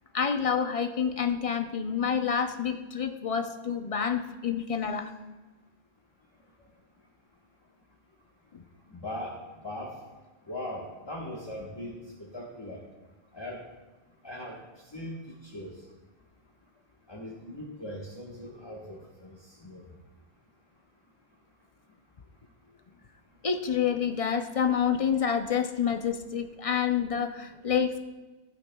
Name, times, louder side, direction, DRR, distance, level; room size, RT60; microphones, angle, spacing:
voice 1, 0.1-5.1 8.5-8.6 23.4-28.0, left 7 dB, 40° left, 7 dB, 0.5 m, -28 dB
voice 2, 8.9-9.3 9.6-9.9 10.5-12.8 13.3-13.6 14.2-14.6 14.9-15.7 17.1-19.3 19.6-19.8, left 1 dB, 25° left, -3 dB, 1.3 m, -39 dB
16.5 x 8.6 x 2.3 m, 1.2 s
omnidirectional pair, 1.2 m